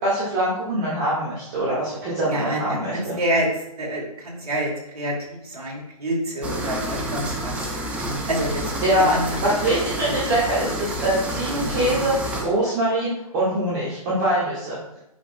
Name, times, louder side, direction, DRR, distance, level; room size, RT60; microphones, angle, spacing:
voice 1, 0.0-3.2 6.7-6.9 8.8-14.8, right 1 dB, 30° right, -8 dB, 1.8 m, -23 dB
voice 2, 2.3-2.6 2.9-3.5 3.8-7.7 8.3-8.8 9.1-9.4, right 1 dB, 70° right, -2 dB, 2.6 m, -27 dB
sound 1, 6.4-12.4, right 1 dB, 5° right, 0.6 m, -29 dB
9.9 x 5.0 x 2.3 m, 0.85 s
figure-of-eight pair, 135°, 20 cm